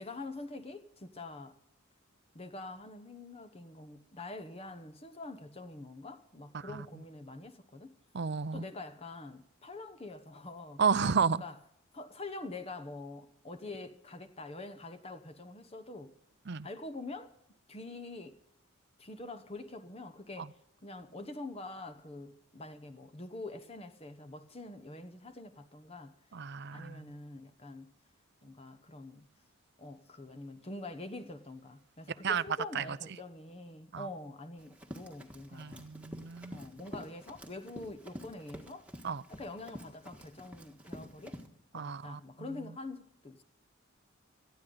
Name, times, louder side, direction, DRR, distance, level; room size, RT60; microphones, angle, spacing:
voice 1, 0.0-1.6 2.3-8.0 8.5-10.8 11.3-11.6 11.9-16.1 16.6-17.3 17.7-18.4 19.0-26.1 26.7-27.9 28.4-29.3 29.8-35.9 36.5-38.9 39.3-41.4 41.7-43.4, left 2 dB, 25° left, 1.0 m, -45 dB
voice 2, 8.1-8.7 10.8-11.4 16.5-16.7 20.4-20.5 26.3-27.1 32.2-32.4 32.7-33.0 33.9-34.1 35.5-36.6 39.0-39.2 41.7-42.2, right 6 dB, 50° right, 0.5 m, -32 dB
Run, 34.6-41.5, equal, 5° right, 1.6 m, -48 dB
18.5 x 13.5 x 3.9 m
head